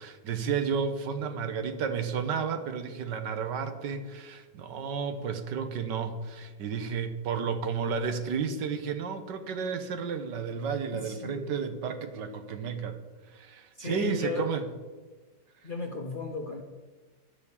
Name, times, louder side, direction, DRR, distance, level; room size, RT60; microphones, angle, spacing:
voice 1, 0.0-13.0 13.3-14.6, right 6 dB, 75° right, 9 dB, 1.6 m, -32 dB
voice 2, 10.9-11.5 13.8-14.7 15.6-16.6, left 3 dB, 40° left, 2 dB, 0.8 m, -35 dB
10.5 x 6.4 x 8.6 m, 1.3 s
omnidirectional pair, 1.9 m